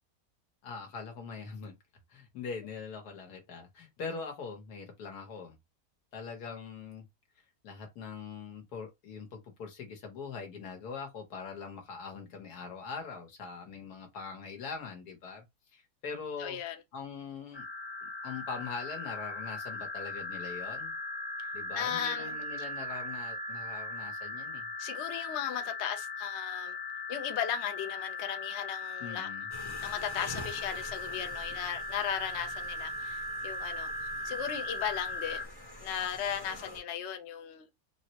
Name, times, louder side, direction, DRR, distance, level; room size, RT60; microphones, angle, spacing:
voice 1, 0.6-1.8 2.1-5.6 6.1-7.0 7.6-15.4 15.7-16.6 16.9-17.7 18.0-20.9 21.5-24.7 29.0-29.5, left 5 dB, 80° left, 1.6 m, -42 dB
voice 2, 16.4-16.8 21.7-22.4 24.8-26.8 27.1-29.3 29.8-33.9 34.2-35.4 35.8-37.7, left 9 dB, 60° left, 0.7 m, -36 dB
sound 1, 17.5-35.4, left 2 dB, 10° left, 0.8 m, -39 dB
sound 2, 29.5-36.8, left 1 dB, 40° left, 0.3 m, -47 dB
3.8 x 2.0 x 2.8 m
omnidirectional pair, 1.7 m